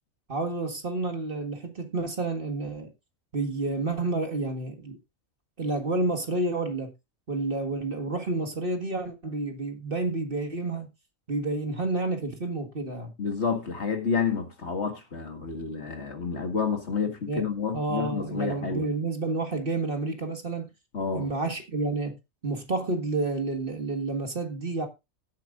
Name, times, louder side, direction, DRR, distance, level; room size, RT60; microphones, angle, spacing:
voice 1, 0.3-2.9 3.3-5.0 5.6-6.9 7.3-10.9 11.3-13.1 17.3-17.5 17.7-20.7 21.1-22.2 22.4-24.9, right 2 dB, 40° right, 1.9 m, -30 dB
voice 2, 13.2-18.9 20.9-21.3, left 5 dB, 55° left, 2.1 m, -29 dB
16.0 x 9.1 x 2.5 m
omnidirectional pair, 1.4 m